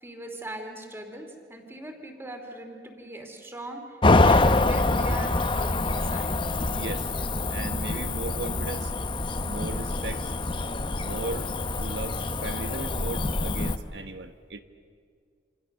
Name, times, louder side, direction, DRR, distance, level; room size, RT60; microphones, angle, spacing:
voice 1, 0.0-4.0 4.2-6.4, right 1 dB, 15° right, 4 dB, 2.8 m, -40 dB
Cricket / Motor vehicle (road), 4.0-13.8, left 2 dB, 30° left, 0.8 m, -25 dB
sound 1, 6.2-11.8, left 1 dB, 85° left, 2.0 m, -45 dB
voice 2, 6.7-7.1 7.5-8.9 9.4-10.3 10.9-11.5 11.8-14.6, right 2 dB, 85° right, 8 dB, 1.4 m, -36 dB
27.5 x 26.0 x 6.6 m, 2.1 s
head